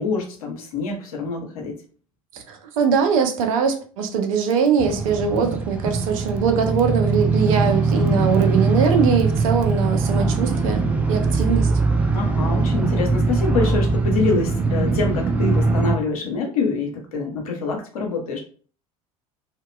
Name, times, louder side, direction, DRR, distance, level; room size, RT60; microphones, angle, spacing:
voice 1, 0.0-1.7 12.1-18.4, left 4 dB, 75° left, 1 dB, 0.7 m, -25 dB
voice 2, 2.5-11.7, right 6 dB, 65° right, 5 dB, 0.5 m, -21 dB
sound 1, 4.8-16.0, right 4 dB, 5° right, 0.4 m, -21 dB
2.8 x 2.1 x 2.2 m, 0.42 s
figure-of-eight pair, 70°, 19 cm